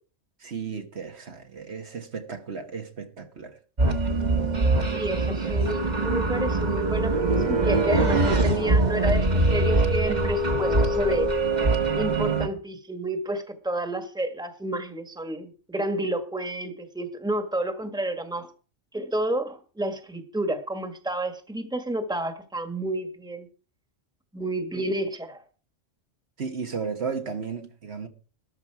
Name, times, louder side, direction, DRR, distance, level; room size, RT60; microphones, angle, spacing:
voice 1, 0.4-3.6 5.2-5.7 26.4-28.1, right 5 dB, 60° right, 1.6 m, -34 dB
sound 1, 3.8-12.5, right 2 dB, 35° right, 1.6 m, -23 dB
voice 2, 4.9-11.3 11.9-18.5 18.9-23.5 24.3-25.4, right 1 dB, 5° right, 1.6 m, -30 dB
13.5 x 12.0 x 4.8 m
omnidirectional pair, 1.2 m